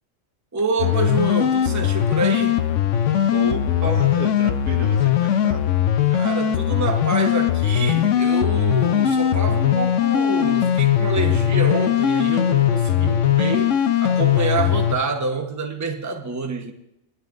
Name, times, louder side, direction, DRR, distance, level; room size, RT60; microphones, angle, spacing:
voice 1, 0.5-2.6 6.1-16.7, right 3 dB, 15° right, 0.9 m, -27 dB
sound 1, 0.8-14.9, left 10 dB, 70° left, 1.0 m, -20 dB
voice 2, 3.3-5.6, right 1 dB, 75° right, 1.8 m, -30 dB
22.0 x 11.0 x 2.6 m
omnidirectional pair, 1.4 m